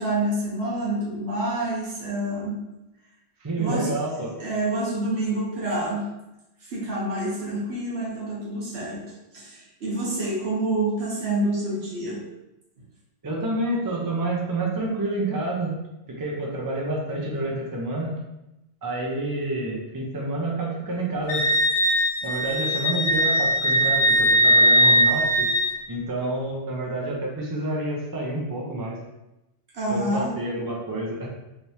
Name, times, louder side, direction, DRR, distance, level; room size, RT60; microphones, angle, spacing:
voice 1, 0.0-2.6 3.6-3.9 4.4-6.1 6.6-9.0 9.3-12.2 29.7-30.3, right 1 dB, 65° right, -5 dB, 1.2 m, -27 dB
voice 2, 3.4-4.3 13.2-15.8 16.1-18.2 18.8-21.6 22.2-25.5 25.9-29.0 29.9-31.3, right 1 dB, 30° right, -2 dB, 0.4 m, -28 dB
Wind instrument woodwind instrument, 21.3-25.8, equal, 80° left, 1.2 m, -20 dB
3.4 x 3.0 x 2.7 m, 0.94 s
omnidirectional pair, 1.2 m